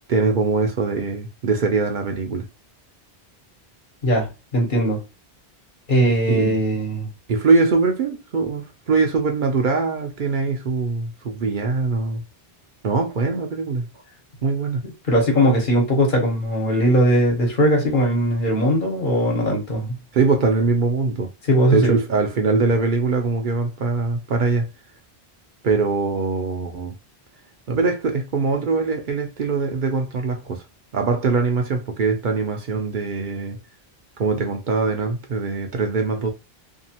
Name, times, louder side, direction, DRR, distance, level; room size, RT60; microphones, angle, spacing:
voice 1, 0.1-2.5 6.3-6.6 7.3-12.2 12.8-13.9 14.4-14.8 20.1-21.3 21.7-24.7 25.6-27.0 27.7-30.6 30.9-33.6 34.2-36.3, right 4 dB, 60° right, 0.6 m, -22 dB
voice 2, 4.0-5.0 5.9-7.1 14.8-19.9 21.5-21.9, equal, 55° left, 1.2 m, -19 dB
2.6 x 2.4 x 2.8 m
omnidirectional pair, 1.0 m